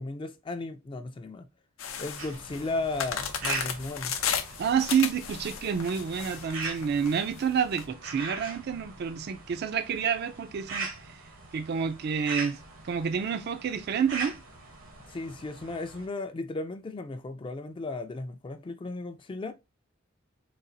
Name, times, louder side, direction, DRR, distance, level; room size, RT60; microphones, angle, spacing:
voice 1, 0.0-1.5 2.0-4.2 15.1-19.5, left 3 dB, 25° left, 0.3 m, -35 dB
sound 1, 1.8-7.8, left 8 dB, 80° left, 0.5 m, -34 dB
sound 2, 2.2-16.1, right 4 dB, 75° right, 1.0 m, -41 dB
voice 2, 4.6-11.1 11.5-12.6 12.8-14.4, right 7 dB, 50° right, 0.4 m, -29 dB
4.0 x 2.3 x 2.6 m
head